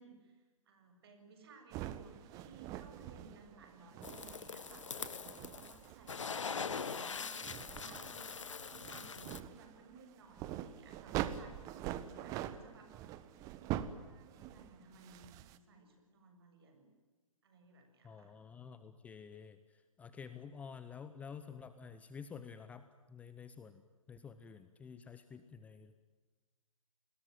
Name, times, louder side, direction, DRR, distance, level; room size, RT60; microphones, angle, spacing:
voice 1, 0.0-4.9 5.3-12.9 13.5-16.9 17.4-18.3 20.3-20.5, right 3 dB, 45° right, 5 dB, 7.6 m, -59 dB
sound 1, 1.7-15.6, right 12 dB, 20° right, 1.2 m, -45 dB
sound 2, 4.0-5.8 6.1-9.4, left 5 dB, 60° left, 1.8 m, -42 dB
voice 2, 18.0-23.8 24.1-26.0, left 6 dB, 10° left, 11 dB, 0.8 m, -50 dB
29.5 x 21.0 x 9.3 m, 1.3 s
figure-of-eight pair, 135°, 18 cm